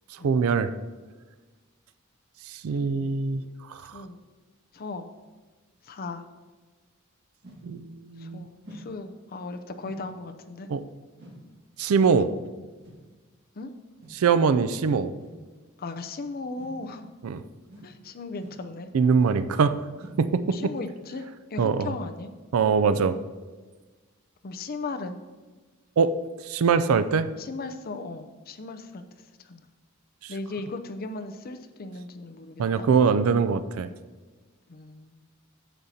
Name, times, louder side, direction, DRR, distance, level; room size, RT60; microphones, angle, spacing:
voice 1, 0.2-0.7 2.5-3.4 3.7-4.0 7.6-8.5 10.7-10.8 11.8-12.3 14.1-15.1 17.2-17.4 18.9-19.8 20.2-20.7 21.6-21.9 22.5-23.2 26.0-26.1 26.4-27.3 30.2-30.3 32.6-33.9, right 5 dB, 85° right, 13 dB, 0.4 m, -23 dB
voice 2, 4.7-5.1 5.8-6.3 8.2-10.7 13.5-13.7 15.8-17.1 17.8-18.9 20.5-21.2 21.5-22.3 24.4-25.2 27.4-29.0 29.4-29.7 30.3-32.9 34.7-35.2, left 3 dB, 45° left, 7 dB, 0.5 m, -37 dB
sound 1, 7.4-7.7 8.6-8.9 9.8-10.1 11.2-11.5 12.8-13.0 14.0-14.3 15.2-15.4 16.5-16.9 17.7-18.0 18.4-18.7 19.1-19.5 19.9-20.3, equal, 55° right, 1.7 m, -47 dB
10.0 x 7.2 x 2.8 m, 1.3 s
head